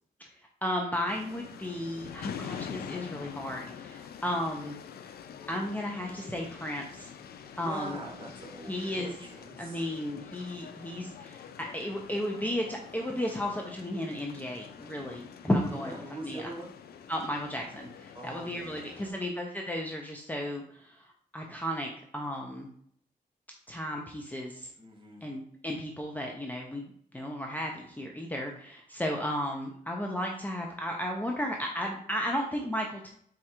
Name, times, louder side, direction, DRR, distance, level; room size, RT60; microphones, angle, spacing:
voice 1, 0.6-4.8 5.5-7.1 7.6-8.0 8.7-9.1 9.6-15.9 16.2-16.5 17.1-21.1 21.3-22.7 23.7-24.7 25.2-26.9 27.1-33.1, equal, 10° left, 0 dB, 0.6 m, -34 dB
sound 1, 1.1-19.1, left 8 dB, 80° left, 0.4 m, -45 dB
voice 2, 7.6-9.8 15.7-16.7 18.1-19.2 24.8-25.2, right 2 dB, 30° right, -1 dB, 1.5 m, -43 dB
4.4 x 2.4 x 4.3 m, 0.63 s
cardioid pair, 95°, 16 cm